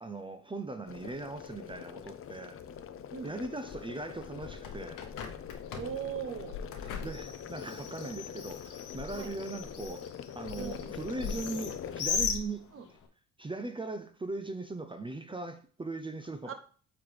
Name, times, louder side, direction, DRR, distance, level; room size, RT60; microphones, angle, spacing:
voice 1, 0.0-2.6 3.2-5.0 7.0-10.0 10.3-13.0 13.4-16.5, right 3 dB, 15° right, 0.6 m, -39 dB
sound 1, 0.9-12.0, left 9 dB, 45° left, 0.5 m, -44 dB
Bird, 4.2-13.1, left 6 dB, 85° left, 1.0 m, -39 dB
voice 2, 5.8-6.6 9.1-9.3 10.6-11.0 12.7-12.8 16.5-16.6, right 8 dB, 45° right, 0.9 m, -39 dB
8.3 x 4.0 x 3.3 m
cardioid pair, 90°, 30 cm